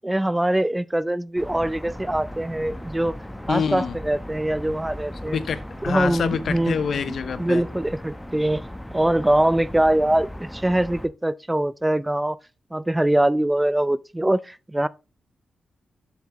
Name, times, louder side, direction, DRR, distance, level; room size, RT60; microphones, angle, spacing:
voice 1, 0.0-3.1 3.5-5.4 5.8-6.8 7.4-8.6 8.9-12.4 12.7-14.9, right 1 dB, 10° right, 0.4 m, -23 dB
sound 1, 1.4-11.1, equal, 5° left, 0.9 m, -37 dB
voice 2, 3.5-4.0 5.2-7.6, left 6 dB, 70° left, 0.7 m, -26 dB
7.3 x 7.2 x 3.0 m
cardioid pair, 80°, 0 cm